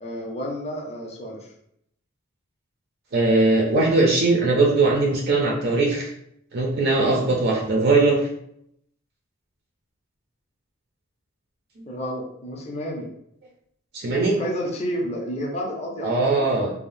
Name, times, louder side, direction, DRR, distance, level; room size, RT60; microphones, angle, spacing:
voice 1, 0.0-1.5 11.9-13.1 14.4-16.5, equal, 30° left, 0 dB, 0.5 m, -30 dB
voice 2, 3.1-6.1 6.5-8.2 11.8-11.9 13.9-14.4 16.0-16.7, right 3 dB, 50° right, -1 dB, 0.5 m, -20 dB
3.4 x 2.0 x 2.5 m, 0.72 s
head